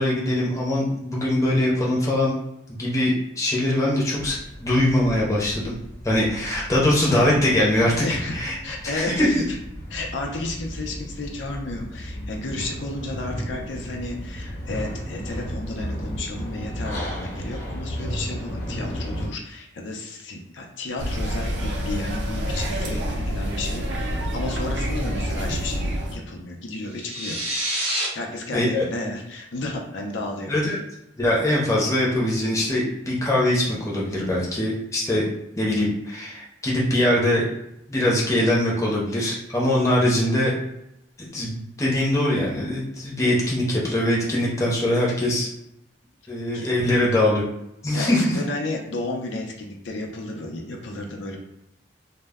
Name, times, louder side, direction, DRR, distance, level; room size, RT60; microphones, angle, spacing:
voice 1, 0.0-2.3 2.7-5.8 6.0-7.9 8.3-8.6 8.9-9.3 28.5-28.8 30.5-30.8 31.2-35.2 35.6-37.4 37.9-40.5 41.2-45.5 46.3-47.5 47.8-48.4, left 1 dB, 15° left, -5 dB, 0.6 m, -22 dB
sound 1, 4.2-19.3, equal, 60° left, 0.9 m, -34 dB
voice 2, 8.0-8.3 8.6-9.6 9.9-27.7 28.1-30.7 46.5-46.7 47.9-51.4, left 2 dB, 90° left, 1 dB, 0.5 m, -32 dB
sound 2, 21.0-26.2, equal, 70° right, 0.4 m, -27 dB
sound 3, 26.9-28.1, right 1 dB, 30° right, 0.7 m, -27 dB
2.1 x 2.1 x 3.4 m, 0.83 s
head